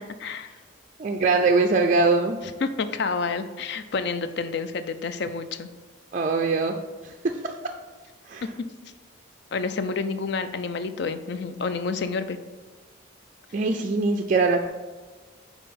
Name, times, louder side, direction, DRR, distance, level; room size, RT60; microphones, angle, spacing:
voice 1, 0.2-0.5 2.6-5.7 9.5-12.4, left 4 dB, 55° left, 11 dB, 0.4 m, -29 dB
voice 2, 1.0-2.4 6.1-6.8 7.0-7.1 8.3-8.4 13.5-14.7, right 3 dB, 40° right, 3 dB, 0.3 m, -22 dB
5.5 x 4.5 x 4.2 m, 1.3 s
head